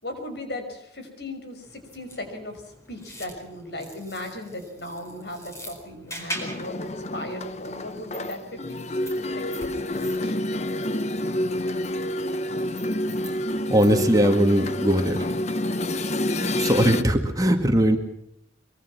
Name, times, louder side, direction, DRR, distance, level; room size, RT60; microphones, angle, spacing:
voice 1, 0.0-10.4, left 1 dB, 65° left, 6 dB, 5.7 m, -37 dB
sound 1, 1.6-14.3, equal, 15° left, 4.5 m, -44 dB
sound 2, 6.3-17.0, left 1 dB, 35° left, 0.9 m, -28 dB
voice 2, 13.7-15.6 16.4-18.0, equal, 20° right, 4 dB, 2.0 m, -21 dB
24.5 x 23.5 x 6.1 m, 0.76 s
head